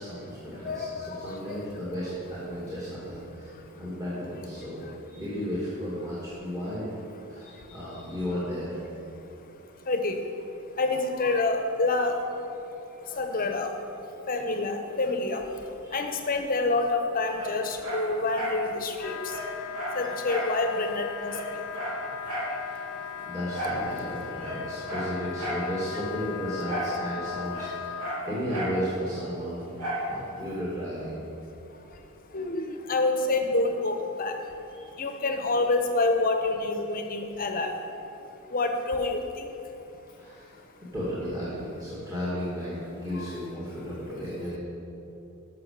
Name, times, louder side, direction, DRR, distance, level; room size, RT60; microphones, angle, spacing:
voice 1, 0.0-4.8 5.1-7.0 7.3-8.7 15.8-16.2 22.5-22.8 23.2-29.6 30.0-31.2 34.7-34.9 40.1-40.5 40.9-44.6, equal, 15° right, -9 dB, 2.2 m, -34 dB
voice 2, 0.6-1.6 3.5-3.8 4.8-4.9 7.3-7.7 9.1-23.3 25.9-26.0 30.0-30.2 31.7-34.6 34.9-37.8 38.1-39.7 40.0-40.7 43.1-43.3 44.1-44.2, left 2 dB, 40° left, 5 dB, 1.0 m, -29 dB
Dog, 17.3-18.6 18.9-19.0 19.3-20.6 20.9-21.0 21.3-22.6 23.5-23.9 24.3-25.7 26.6-27.0 27.2-28.8 29.8-30.1 30.6-30.7, right 1 dB, 80° right, 2.8 m, -33 dB
Wind instrument woodwind instrument, 19.0-28.2, left 9 dB, 80° left, 0.4 m, -38 dB
12.5 x 5.8 x 6.8 m, 2.9 s
head